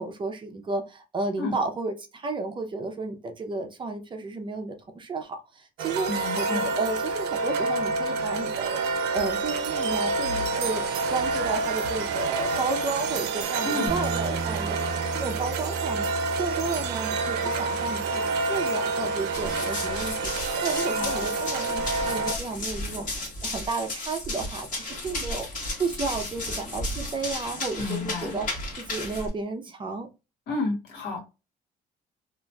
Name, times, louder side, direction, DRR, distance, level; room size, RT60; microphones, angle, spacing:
voice 1, 0.0-6.1 6.4-28.5 28.8-30.1, right 3 dB, 30° right, 0.5 m, -32 dB
The Hourglass, 5.8-22.3, right 3 dB, 80° right, 0.5 m, -28 dB
voice 2, 6.1-6.8 13.6-13.9 20.8-21.3 27.8-28.4 30.5-31.2, left 3 dB, 75° left, 1.3 m, -31 dB
Bass guitar, 13.9-20.1, right 4 dB, 15° left, 0.8 m, -37 dB
Run, 19.3-29.3, left 2 dB, 50° left, 1.2 m, -34 dB
2.9 x 2.5 x 2.2 m
cardioid pair, 110°, 17 cm